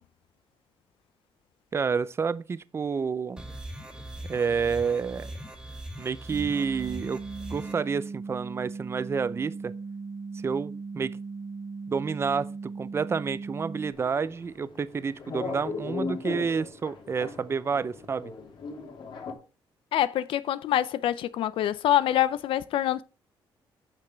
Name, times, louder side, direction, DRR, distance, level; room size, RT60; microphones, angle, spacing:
voice 1, 1.7-3.4 4.3-5.4 6.0-7.2 7.5-9.7 10.4-11.2 11.9-18.3, right 5 dB, 30° right, 0.5 m, -29 dB
sound 1, 3.4-7.7, right 1 dB, 10° right, 2.1 m, -41 dB
sound 2, 6.3-13.9, right 4 dB, 75° right, 1.9 m, -38 dB
sound 3, 13.9-19.3, left 4 dB, 60° left, 2.5 m, -38 dB
voice 2, 19.9-23.0, left 12 dB, 75° left, 0.5 m, -25 dB
8.7 x 6.1 x 4.4 m
cardioid pair, 120°, 9 cm